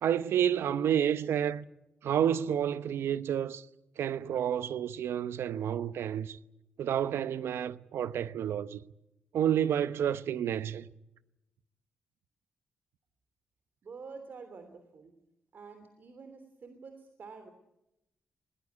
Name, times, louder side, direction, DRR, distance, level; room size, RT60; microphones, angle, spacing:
voice 1, 0.0-1.6 2.0-3.7 4.0-6.4 6.8-8.8 9.3-10.9, right 9 dB, 80° right, 0.9 m, -30 dB
voice 2, 13.8-15.1 15.5-17.5, right 4 dB, 55° right, 3.2 m, -48 dB
21.0 x 19.5 x 9.7 m
cardioid pair, 95°, 4 cm